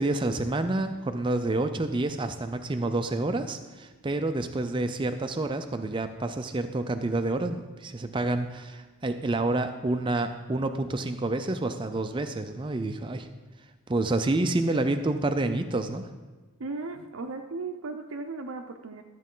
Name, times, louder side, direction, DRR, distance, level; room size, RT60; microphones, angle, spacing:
voice 1, 0.0-13.3 13.9-16.1, right 2 dB, 20° right, 8 dB, 0.4 m, -28 dB
voice 2, 16.6-19.0, right 3 dB, 65° right, 5 dB, 0.6 m, -36 dB
13.0 x 8.2 x 3.8 m, 1.3 s
head